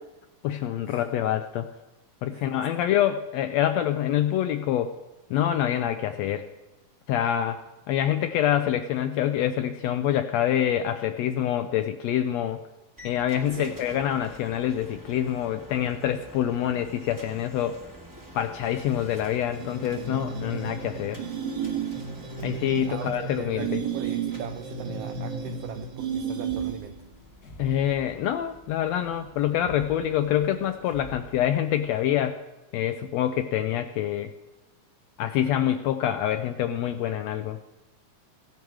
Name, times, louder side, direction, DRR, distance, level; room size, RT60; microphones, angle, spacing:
voice 1, 0.4-1.7 2.2-4.9 5.3-6.5 7.1-7.6 7.9-12.6 13.0-17.8 18.3-21.2 22.4-23.8 27.6-32.4 32.7-34.3 35.2-37.6, left 11 dB, 80° left, 8 dB, 1.5 m, -26 dB
sound 1, 13.0-30.8, equal, 10° right, 0.9 m, -48 dB
sound 2, 19.5-27.0, right 6 dB, 50° right, 1.6 m, -32 dB
voice 2, 22.8-27.0, right 10 dB, 85° right, 8 dB, 1.4 m, -40 dB
sound 3, 26.5-28.7 29.5-32.0, equal, 55° left, 1.1 m, -46 dB
16.0 x 10.5 x 4.7 m, 1.0 s
omnidirectional pair, 3.5 m